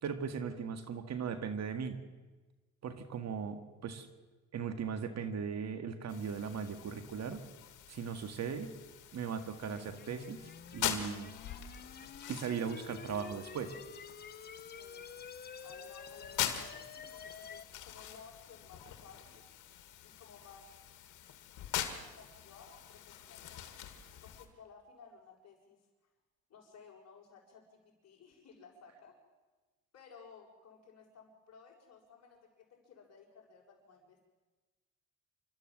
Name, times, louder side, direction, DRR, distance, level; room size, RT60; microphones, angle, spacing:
voice 1, 0.0-2.0 2.8-4.1 4.5-7.4 7.9-8.7 9.1-10.4 10.7-11.3 12.3-13.8, right 6 dB, 60° right, 9 dB, 2.0 m, -38 dB
sound 1, 6.1-24.5, left 10 dB, 85° left, 2.1 m, -44 dB
sound 2, 9.6-17.6, left 6 dB, 35° left, 0.9 m, -50 dB
voice 2, 14.7-15.2 15.6-19.4 20.0-20.7 21.7-23.7 24.2-25.8 26.5-29.2 29.9-34.2, left 5 dB, 60° left, -1 dB, 6.6 m, -57 dB
28.0 x 13.0 x 7.7 m, 1.2 s
cardioid pair, 90°, 30 cm